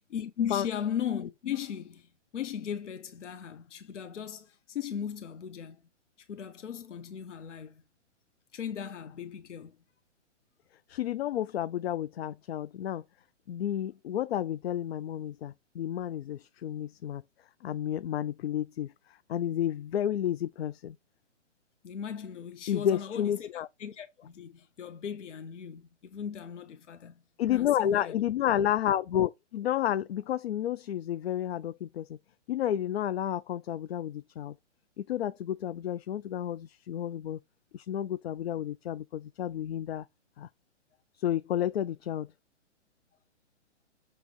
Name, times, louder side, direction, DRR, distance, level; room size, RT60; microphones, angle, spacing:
voice 1, 0.1-5.8 6.3-7.8 8.5-9.8 21.8-27.2 27.5-28.2, left 8 dB, 75° left, 0.9 m, -37 dB
voice 2, 10.9-13.0 13.5-17.2 17.6-18.9 19.3-21.0 22.7-23.7 27.4-32.2 32.5-34.5 35.0-37.4 37.7-40.0 40.4-40.5 41.1-42.3, left 11 dB, 60° left, 0.4 m, -31 dB
7.4 x 3.0 x 4.5 m
hypercardioid pair, 135°, 36 cm